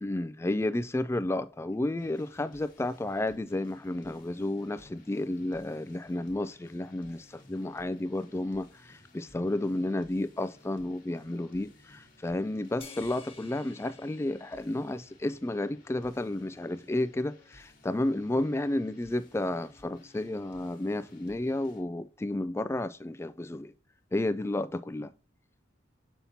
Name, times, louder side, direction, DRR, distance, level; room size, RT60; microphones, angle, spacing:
voice 1, 0.0-23.7 24.1-25.1, left 1 dB, 15° left, 0.3 m, -32 dB
sound 1, 2.0-21.8, left 1 dB, 45° left, 1.4 m, -58 dB
sound 2, 12.8-15.5, left 5 dB, 30° left, 1.1 m, -52 dB
7.3 x 5.7 x 2.7 m
head